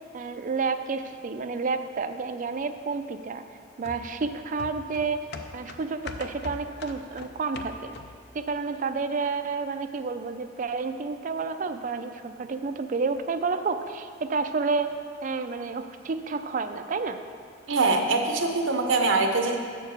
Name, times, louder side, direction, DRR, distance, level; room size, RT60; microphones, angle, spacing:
voice 1, 0.1-3.4 3.8-5.3 5.5-7.9 8.3-14.9 15.2-17.2, right 4 dB, 40° right, 8 dB, 0.4 m, -30 dB
sound 1, 3.8-8.3 8.7-8.8, left 3 dB, 55° left, 0.5 m, -41 dB
voice 2, 17.7-19.6, right 3 dB, 75° right, 4 dB, 0.8 m, -23 dB
6.7 x 4.6 x 6.8 m, 2.1 s
head